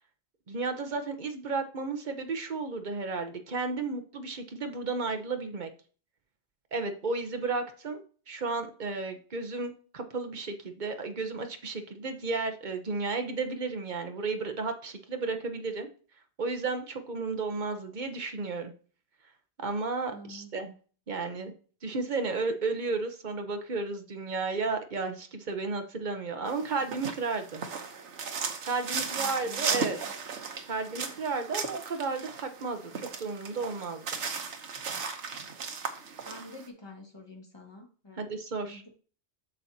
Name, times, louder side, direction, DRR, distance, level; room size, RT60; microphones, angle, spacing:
voice 1, 0.5-5.7 6.7-15.9 16.4-18.7 19.6-20.7 21.1-21.5 21.8-27.6 28.6-30.0 30.7-34.0 38.2-39.0, right 4 dB, 45° right, 6 dB, 1.1 m, -33 dB
voice 2, 20.1-20.5 28.9-30.1 36.2-38.8, left 1 dB, 20° left, 1 dB, 1.7 m, -48 dB
sound 1, 26.5-36.6, right 5 dB, 90° right, 1.3 m, -36 dB
8.6 x 6.3 x 2.8 m, 0.40 s
omnidirectional pair, 1.2 m